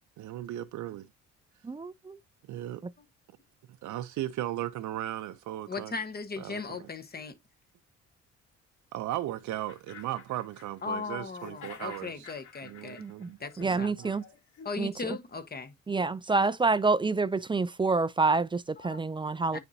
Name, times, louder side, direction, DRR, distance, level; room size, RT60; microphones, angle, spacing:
voice 1, 0.2-1.1 2.5-2.8 3.8-5.9 6.4-6.8 8.9-12.3 12.6-14.1, right 13 dB, 75° right, 0.6 m, -37 dB
voice 2, 1.6-2.2 13.0-13.3 13.6-14.2 14.8-15.2 15.9-19.6, right 3 dB, 15° right, 0.4 m, -28 dB
voice 3, 5.7-7.4 10.8-13.0 13.4-13.9 14.6-15.7 18.8-19.0 19.2-19.6, left 4 dB, 30° left, 1.2 m, -38 dB
sound 1, 9.1-9.2 9.5-11.0 11.3-14.7, left 7 dB, 80° left, 3.1 m, -50 dB
9.5 x 4.3 x 2.7 m
cardioid pair, 90°, 30 cm